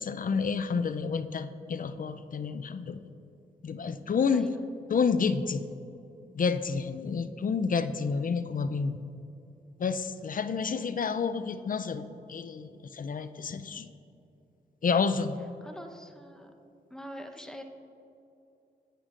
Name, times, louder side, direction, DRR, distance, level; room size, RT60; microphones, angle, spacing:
voice 1, 0.0-3.0 3.6-4.5 4.9-5.6 6.3-9.0 9.8-13.9 14.8-15.4, left 5 dB, 50° left, 11 dB, 0.5 m, -29 dB
voice 2, 4.3-4.6 10.5-10.7 15.6-16.5 16.9-17.6, equal, 5° left, 5 dB, 0.9 m, -44 dB
10.0 x 9.0 x 2.5 m, 2.8 s
supercardioid pair, 45°, 18 cm